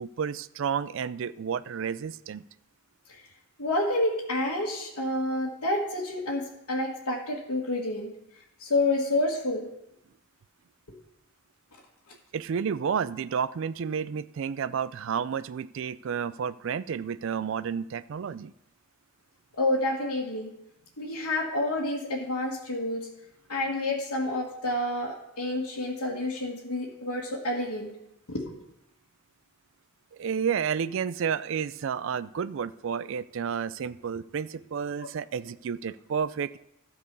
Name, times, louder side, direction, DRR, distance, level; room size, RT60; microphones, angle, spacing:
voice 1, 0.0-2.4 12.3-18.5 30.2-36.6, right 7 dB, 60° right, 16 dB, 0.3 m, -31 dB
voice 2, 3.6-8.1 8.6-9.7 19.5-20.5 21.0-23.1 23.5-27.9 28.3-28.5, left 1 dB, 85° left, -6 dB, 1.5 m, -29 dB
13.0 x 4.7 x 6.7 m, 0.83 s
head